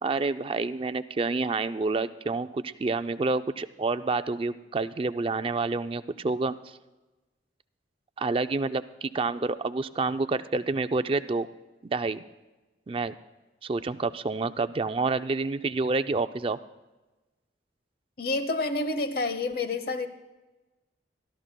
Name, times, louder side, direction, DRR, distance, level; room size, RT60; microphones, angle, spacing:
voice 1, 0.0-6.8 8.2-11.5 11.8-12.2 12.9-13.1 13.6-16.6, right 3 dB, 30° right, 11 dB, 0.4 m, -28 dB
voice 2, 18.2-20.1, left 2 dB, 55° left, 10 dB, 0.9 m, -28 dB
25.5 x 13.0 x 2.2 m, 1.1 s
head